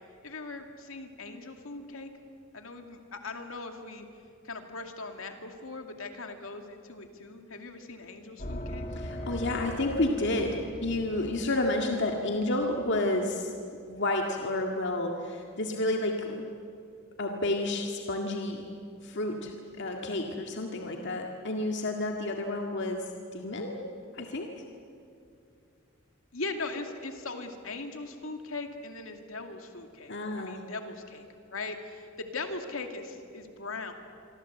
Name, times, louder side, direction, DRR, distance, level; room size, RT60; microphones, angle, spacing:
voice 1, 0.2-2.1 2.5-4.1 4.4-8.9 26.3-31.2 31.5-33.9, left 3 dB, 75° left, 5 dB, 2.4 m, -39 dB
sound 1, 8.4-13.1, equal, 40° left, 2.5 m, -40 dB
voice 2, 9.0-13.5 13.9-16.5 17.2-18.7 19.0-23.1 23.3-23.8 24.1-24.5 30.1-30.6, left 2 dB, 60° left, 2 dB, 1.9 m, -30 dB
26.0 x 25.0 x 8.2 m, 2.5 s
head